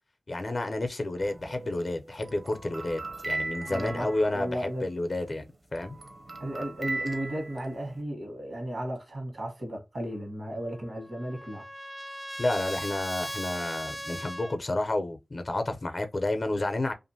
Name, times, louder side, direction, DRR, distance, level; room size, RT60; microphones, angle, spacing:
voice 1, 0.3-5.4 5.7-6.0 12.4-16.9, left 2 dB, 50° left, 0.5 m, -30 dB
sound 1, 1.2-5.2 5.5-8.0, right 2 dB, 45° right, 0.6 m, -38 dB
voice 2, 3.7-4.9 5.2-5.3 6.4-11.7, right 1 dB, 65° right, 1.1 m, -35 dB
Trumpet, 10.7-14.6, equal, 5° right, 0.3 m, -38 dB
2.5 x 2.5 x 2.7 m
wide cardioid pair, 60°, 0 cm